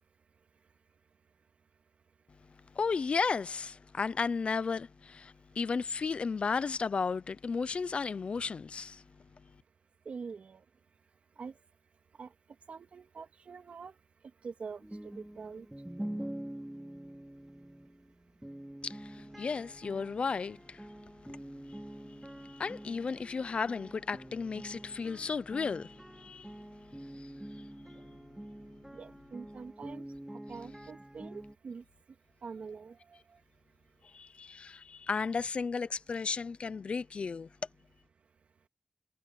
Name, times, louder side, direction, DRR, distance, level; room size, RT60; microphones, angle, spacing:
voice 1, 2.8-9.0 18.8-20.9 22.4-26.5 27.2-27.3 34.1-37.5, left 5 dB, 60° left, 0.6 m, -34 dB
voice 2, 10.0-10.6 11.4-11.5 12.2-12.3 12.7-13.9 14.4-14.8 15.2-15.7 28.9-31.8 32.4-33.0, right 5 dB, 75° right, 3.0 m, -45 dB
sound 1, 14.8-31.5, right 1 dB, 10° right, 4.3 m, -46 dB
wide cardioid pair, 135°, 2 cm